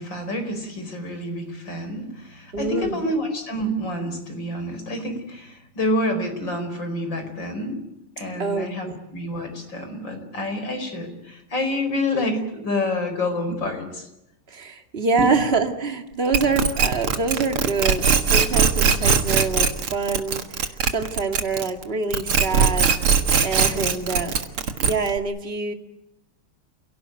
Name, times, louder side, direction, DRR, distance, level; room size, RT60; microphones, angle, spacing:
voice 1, 0.0-7.8 8.2-14.1 15.2-15.3, left 1 dB, 55° left, 7 dB, 5.5 m, -28 dB
voice 2, 2.5-3.1 8.4-8.9 13.6-13.7 14.5-22.9 23.4-24.3 24.8-25.7, right 4 dB, 25° right, 4 dB, 2.4 m, -25 dB
sound 1, 16.3-21.8 22.1-25.2, right 6 dB, 80° right, 2.5 m, -20 dB
30.0 x 17.0 x 9.3 m, 0.88 s
omnidirectional pair, 2.4 m